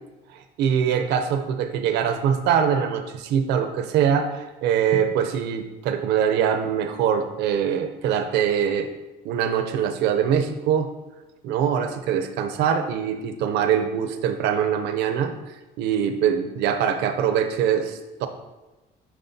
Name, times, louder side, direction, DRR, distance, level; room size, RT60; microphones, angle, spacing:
voice 1, 0.3-8.9 9.2-10.9 11.4-18.3, right 8 dB, 85° right, 8 dB, 0.6 m, -23 dB
9.3 x 3.7 x 2.7 m, 1.1 s
cardioid pair, 110°, 17 cm